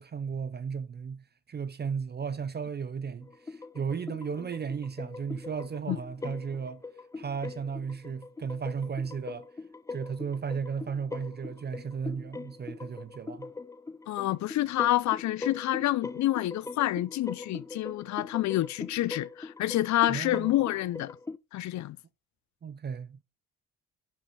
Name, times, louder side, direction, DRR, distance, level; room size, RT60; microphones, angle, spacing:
voice 1, 0.0-6.8 7.2-9.4 9.9-13.5 20.1-20.5 22.6-23.2, right 6 dB, 35° right, 0.6 m, -35 dB
sound 1, 3.2-21.4, left 3 dB, 10° left, 0.3 m, -42 dB
voice 2, 14.1-21.1 21.5-22.0, left 15 dB, 70° left, 0.5 m, -28 dB
11.5 x 4.9 x 4.2 m
cardioid pair, 90°, 30 cm